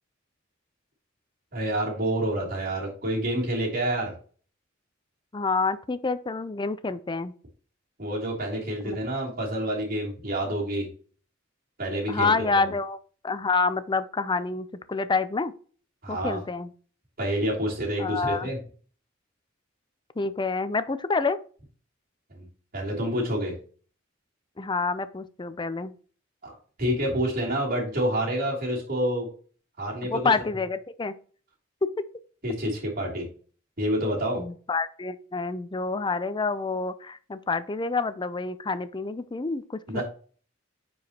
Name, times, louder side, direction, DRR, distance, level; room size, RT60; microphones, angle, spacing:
voice 1, 1.5-4.1 8.0-10.9 11.8-12.7 16.0-16.4 17.2-18.6 22.3-22.4 22.7-23.5 26.4-26.5 26.8-29.3 29.8-30.2 32.4-33.3 33.8-34.4 39.9-40.0, right 1 dB, 45° right, -3 dB, 3.1 m, -28 dB
voice 2, 5.3-7.3 8.8-9.0 12.1-13.0 13.2-15.5 16.1-16.7 18.0-18.5 20.2-21.4 24.6-25.9 30.1-31.1 31.8-31.9 34.4-40.0, left 4 dB, 25° left, 13 dB, 0.5 m, -28 dB
9.3 x 4.8 x 2.9 m, 0.42 s
head